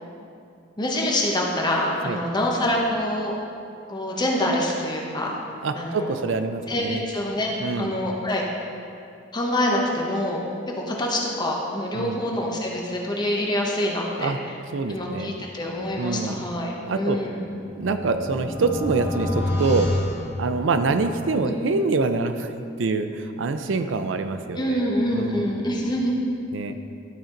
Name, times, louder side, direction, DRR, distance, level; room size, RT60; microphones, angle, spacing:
voice 1, 0.8-3.3 3.9-5.4 5.8-6.2 6.7-7.5 7.8-8.4 9.3-10.4 10.9-14.3 14.9-17.4 21.4-21.5 24.6-26.1, left 1 dB, 25° left, -2 dB, 0.9 m, -25 dB
voice 2, 5.6-7.0 7.6-8.0 11.9-12.2 14.2-14.4 14.7-15.4 16.0-16.4 16.9-17.2 17.7-19.9 20.4-22.5 22.8-24.8 25.1-25.6 26.5-26.7, right 3 dB, 80° right, 8 dB, 0.5 m, -25 dB
sound 1, 17.2-21.1, left 1 dB, 20° right, 1.8 m, -29 dB
12.0 x 4.5 x 3.8 m, 2.5 s
head